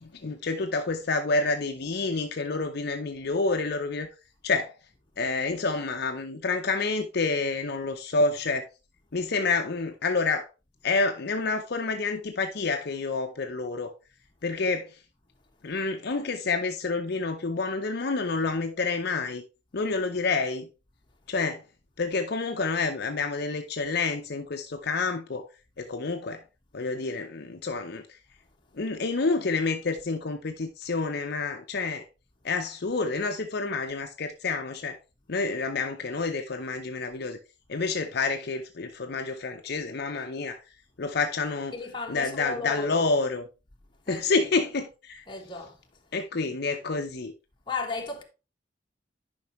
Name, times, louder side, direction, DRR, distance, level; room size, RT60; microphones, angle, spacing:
voice 1, 0.0-4.1 4.4-4.7 5.2-8.7 9.1-10.5 10.8-13.9 14.4-14.9 15.6-19.4 19.7-20.7 21.3-21.6 22.0-25.5 25.8-26.4 26.7-28.0 28.8-32.0 32.4-35.0 35.3-37.4 37.7-40.6 41.0-41.7 42.1-43.4 44.1-45.2 46.1-47.3, left 3 dB, 60° left, 0.7 m, -28 dB
voice 2, 41.7-43.0 44.1-44.3 45.3-45.7 47.7-48.2, left 3 dB, 25° left, 1.3 m, -34 dB
10.5 x 5.3 x 3.1 m
head